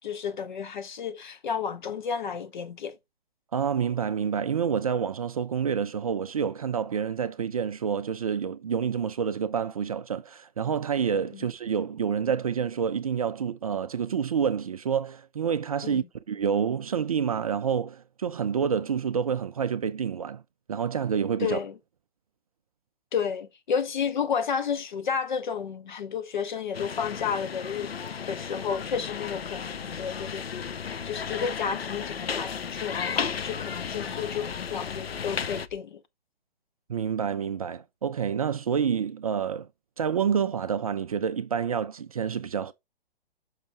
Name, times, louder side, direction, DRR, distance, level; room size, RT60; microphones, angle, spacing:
voice 1, 0.0-3.0 11.3-11.5 15.8-16.0 21.4-21.8 23.1-27.9 28.3-30.4 30.7-36.0, left 7 dB, 50° left, 0.9 m, -31 dB
voice 2, 3.5-20.4 20.7-21.6 36.9-39.7 40.0-42.7, right 7 dB, 40° right, 0.4 m, -28 dB
sound 1, 26.7-35.7, left 6 dB, 80° left, 0.5 m, -34 dB
sound 2, 28.7-35.8, left 6 dB, 15° left, 0.6 m, -50 dB
6.0 x 5.6 x 3.7 m
figure-of-eight pair, 125°, 30 cm